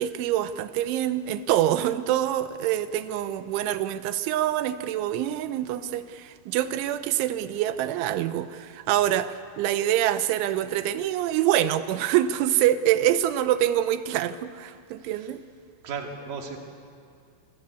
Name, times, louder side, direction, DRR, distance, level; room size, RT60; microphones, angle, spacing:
voice 1, 0.0-15.4, right 12 dB, 80° right, 12 dB, 3.2 m, -25 dB
voice 2, 15.0-15.3 15.8-16.6, right 5 dB, 50° right, 1 dB, 3.8 m, -36 dB
27.5 x 20.0 x 8.3 m, 2.3 s
omnidirectional pair, 5.5 m